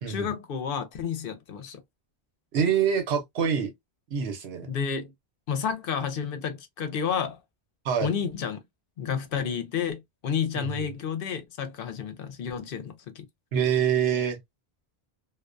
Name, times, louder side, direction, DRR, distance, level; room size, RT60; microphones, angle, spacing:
voice 1, 0.1-1.8 4.7-5.1 5.5-7.4 8.0-8.6 9.0-13.2, left 7 dB, 65° left, 0.8 m, -31 dB
voice 2, 2.5-3.7 4.1-4.7 7.8-8.1 10.5-10.9 13.5-14.4, right 7 dB, 80° right, 1.0 m, -25 dB
2.3 x 2.2 x 2.4 m
omnidirectional pair, 1.0 m